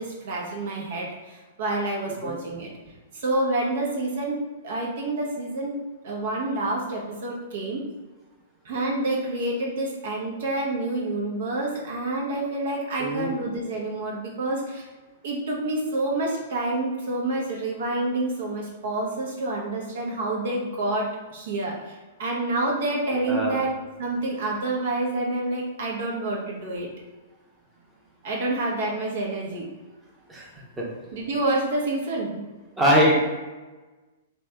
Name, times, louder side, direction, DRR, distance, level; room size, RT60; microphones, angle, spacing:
voice 1, 0.0-2.7 3.1-5.7 6.0-7.8 8.6-14.8 15.2-23.7 24.0-26.9 28.2-29.6 31.1-32.4, right 2 dB, 60° right, -2 dB, 0.9 m, -28 dB
voice 2, 13.0-13.3 23.3-23.6 30.3-30.4 30.8-30.9 32.8-33.2, equal, 10° right, -4 dB, 0.9 m, -21 dB
3.2 x 2.9 x 3.5 m, 1.2 s
figure-of-eight pair, 110°, 0 cm